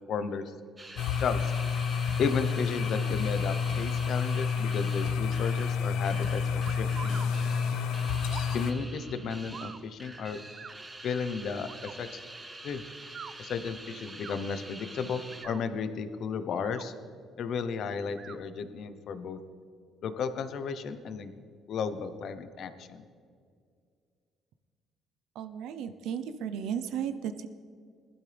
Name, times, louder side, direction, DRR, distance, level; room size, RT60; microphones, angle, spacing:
voice 1, 0.1-0.4 1.1-1.5 2.2-7.2 8.5-10.4 11.0-12.2 12.6-12.8 13.4-16.9 17.4-19.4 20.0-21.3 21.7-23.0, left 6 dB, 50° left, 10 dB, 0.8 m, -34 dB
sound 1, 0.8-15.5, right 2 dB, 10° right, 1.0 m, -46 dB
sound 2, 1.0-8.7, left 6 dB, 80° left, 0.8 m, -29 dB
sound 3, 6.7-7.3 8.3-8.6 9.5-9.8 10.5-10.8 11.6-11.9 13.0-13.3 14.1-14.4 15.2-15.6 16.5-16.9 18.1-18.4, right 7 dB, 35° right, 0.4 m, -44 dB
voice 2, 25.3-27.5, right 8 dB, 75° right, 10 dB, 0.7 m, -34 dB
20.5 x 11.5 x 3.4 m, 2.2 s
cardioid pair, 170°, 0 cm